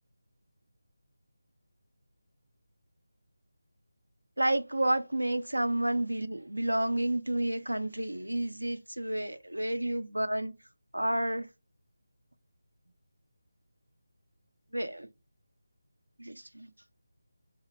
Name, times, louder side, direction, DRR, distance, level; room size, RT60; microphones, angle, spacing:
voice 1, 4.4-10.5 10.9-11.5 14.7-15.1 16.2-16.7, right 1 dB, 90° right, 0.6 m, -30 dB
4.3 x 2.2 x 4.0 m
figure-of-eight pair, 160°, 0 cm